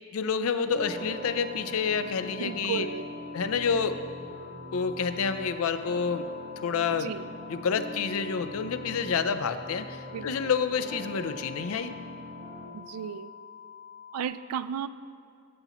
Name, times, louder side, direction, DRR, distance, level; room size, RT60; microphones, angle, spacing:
voice 1, 0.1-2.9 3.3-4.0 4.7-6.3 6.6-7.1 7.5-11.9, left 6 dB, 70° left, 11 dB, 0.5 m, -28 dB
sound 1, 0.7-12.7, left 1 dB, 60° right, 1.7 m, -42 dB
sound 2, 0.9-14.2, left 7 dB, 35° left, 1.1 m, -48 dB
voice 2, 2.4-3.0 7.0-7.3 10.1-10.3 12.7-13.3 14.1-14.9, right 8 dB, 85° right, 14 dB, 0.3 m, -34 dB
15.0 x 7.0 x 3.0 m, 2.4 s
head